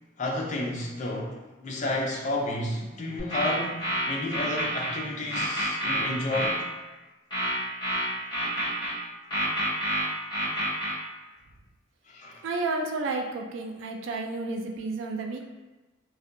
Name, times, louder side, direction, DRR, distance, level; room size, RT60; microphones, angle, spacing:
voice 1, 0.2-6.6 12.1-12.4, left 1 dB, 40° left, -1 dB, 0.4 m, -31 dB
sound 1, 3.2-4.9 5.3-6.6 7.3-8.9 9.3-10.9, equal, 25° left, 1.4 m, -28 dB
voice 2, 12.4-15.5, right 3 dB, 70° right, 3 dB, 0.3 m, -31 dB
2.6 x 2.1 x 2.5 m, 1.2 s
head